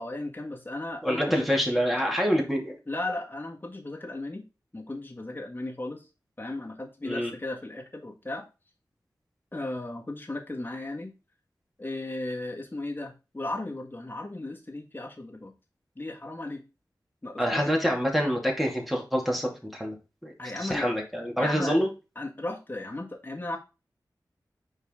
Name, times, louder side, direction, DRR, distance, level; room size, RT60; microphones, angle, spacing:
voice 1, 0.0-1.5 2.9-4.5 4.7-6.0 6.4-8.5 9.5-11.1 11.8-15.5 16.0-16.6 17.2-17.7 20.4-20.9 21.4-21.8 22.2-23.6, left 2 dB, 25° left, 0 dB, 1.8 m, -35 dB
voice 2, 1.0-2.7 7.0-7.3 17.4-20.0 20.2-21.9, equal, ahead, 0 dB, 2.4 m, -26 dB
5.3 x 4.9 x 3.8 m, 0.29 s
wide cardioid pair, 50°, 8 cm